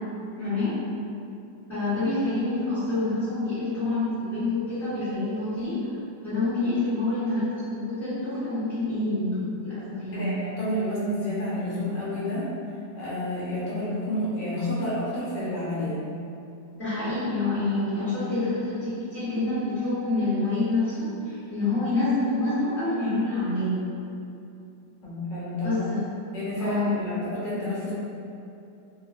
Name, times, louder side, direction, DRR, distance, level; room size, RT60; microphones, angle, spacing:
voice 1, 1.7-5.8 6.2-10.3 16.7-21.1 21.5-23.8 25.6-26.0 26.6-27.0, left 2 dB, 35° left, -17 dB, 1.4 m, -27 dB
voice 2, 10.1-12.5 12.9-16.0 25.0-25.9 26.3-27.9, left 1 dB, 80° left, -9 dB, 1.6 m, -29 dB
3.8 x 2.3 x 2.4 m, 2.6 s
omnidirectional pair, 1.9 m